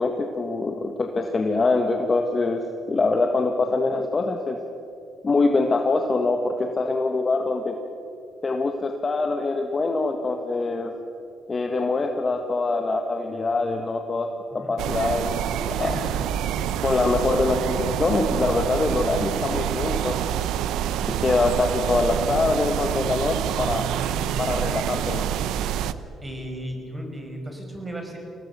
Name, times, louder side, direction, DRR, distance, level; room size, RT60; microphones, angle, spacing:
voice 1, 0.0-4.6 5.2-7.8 8.4-10.9 11.5-14.3 14.5-16.0 16.8-20.1 21.2-23.9 24.4-25.2, left 3 dB, 35° left, 4 dB, 1.6 m, -24 dB
sound 1, 14.8-25.9, right 10 dB, 85° right, 0.7 m, -27 dB
voice 2, 15.7-16.3 24.0-24.2 26.2-28.2, equal, 15° right, 3 dB, 5.3 m, -35 dB
24.0 x 18.0 x 6.9 m, 2.7 s
cardioid pair, 90°, 0 cm